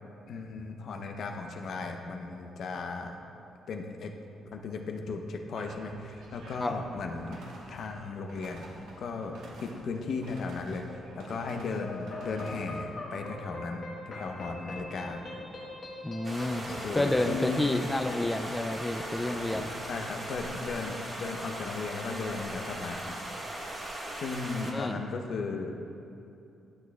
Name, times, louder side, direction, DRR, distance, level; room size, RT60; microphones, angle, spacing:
voice 1, 0.3-3.2 3.7-4.1 4.5-7.4 7.7-8.6 9.0-10.9 11.1-15.3 16.8-17.7 19.9-23.2 24.2-25.7, left 4 dB, 60° left, 3 dB, 0.7 m, -36 dB
sound 1, 5.5-12.9, right 2 dB, 85° right, 1.1 m, -51 dB
sound 2, 11.7-19.7, left 2 dB, 45° left, 1.1 m, -42 dB
voice 2, 16.0-19.7 24.7-25.0, left 1 dB, 10° left, 5 dB, 0.3 m, -30 dB
sound 3, 16.2-24.7, right 1 dB, 30° right, 1.6 m, -39 dB
12.0 x 6.2 x 2.3 m, 2.7 s
cardioid pair, 90°, 0 cm